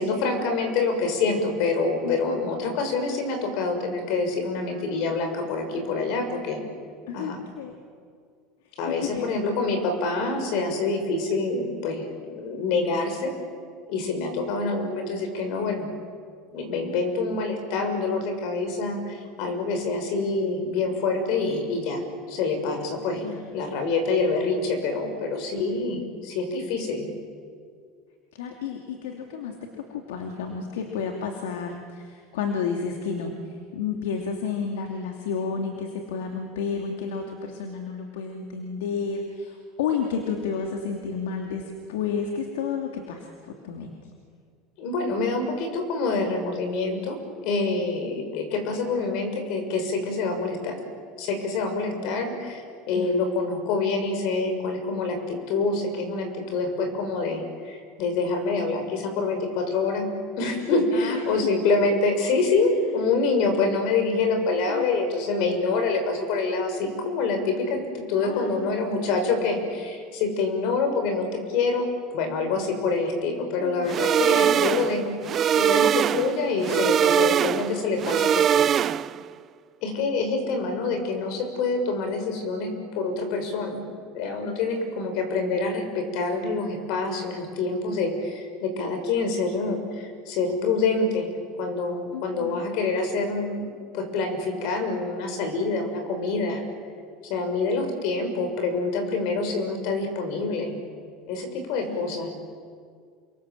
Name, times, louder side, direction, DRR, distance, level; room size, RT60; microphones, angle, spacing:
voice 1, 0.0-6.6 7.1-7.4 8.8-13.3 13.9-15.9 16.5-22.0 22.3-23.2 23.5-27.1 44.8-50.8 51.2-60.1 60.4-71.9 72.1-75.1 75.6-78.7 79.8-83.8 84.1-91.3 91.6-93.7 93.9-96.6 97.3-100.8 101.3-102.3, left 3 dB, 70° left, 6 dB, 6.8 m, -26 dB
voice 2, 2.0-2.4 7.1-7.7 8.9-9.4 23.2-23.5 28.3-43.9 52.9-53.2 60.9-61.2 64.7-65.0 68.2-68.8 73.6-73.9 84.4-84.6 92.1-92.7 101.9-102.3, left 6 dB, 85° left, 3 dB, 2.7 m, -31 dB
sound 1, 73.9-79.3, right 9 dB, 45° right, 0.6 m, -22 dB
29.0 x 23.5 x 7.7 m, 2.1 s
hypercardioid pair, 90°, 0 cm